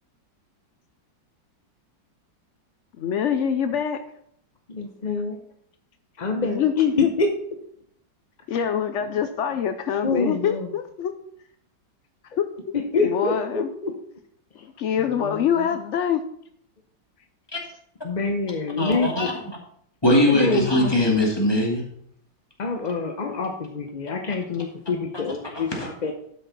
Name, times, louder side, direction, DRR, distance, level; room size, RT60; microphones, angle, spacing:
voice 1, 3.0-4.0 6.4-7.1 8.5-11.1 12.4-12.5 13.0-13.7 14.6-16.2, left 8 dB, 85° left, 8 dB, 0.6 m, -24 dB
voice 2, 4.7-5.4 6.2-7.3 10.0-10.7 12.7-13.9 15.0-15.8 18.0-19.3 20.1-20.7 22.6-26.1, left 3 dB, 45° left, 4 dB, 0.6 m, -26 dB
voice 3, 18.8-19.3 20.0-21.8 25.6-25.9, left 1 dB, 15° left, -2 dB, 2.1 m, -21 dB
12.0 x 6.4 x 4.1 m, 0.68 s
omnidirectional pair, 2.0 m